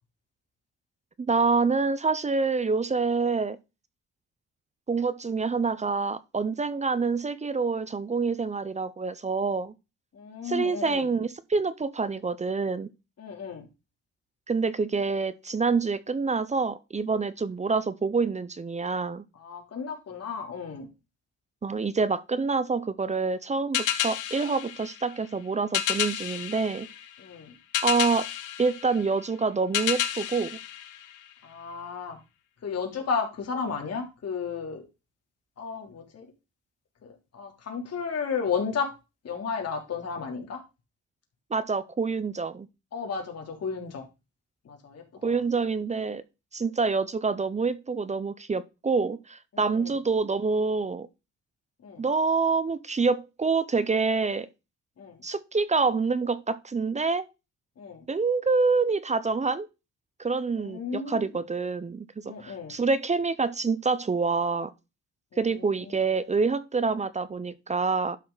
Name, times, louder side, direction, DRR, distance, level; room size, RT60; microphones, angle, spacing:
voice 1, 1.2-3.6 4.9-9.7 10.4-12.9 14.5-19.2 21.6-26.9 27.8-28.3 28.6-30.6 41.5-42.7 45.2-46.2 46.5-51.1 52.0-54.5 55.2-57.3 58.1-59.7 60.2-64.7 65.4-68.2, right 4 dB, 25° right, 0.6 m, -27 dB
voice 2, 10.1-11.0 13.2-13.7 19.3-20.9 27.2-27.5 31.4-32.2 32.6-34.8 35.6-36.3 37.0-38.9 39.2-40.6 42.9-44.0 44.6-45.3 49.5-50.0 51.8-52.0 55.0-55.2 57.8-58.0 60.6-61.3 62.2-62.8 65.5-66.0, left 5 dB, 55° left, 3.1 m, -33 dB
sound 1, 23.7-31.6, left 11 dB, 85° left, 1.3 m, -31 dB
11.5 x 6.0 x 4.0 m
cardioid pair, 90°, 30 cm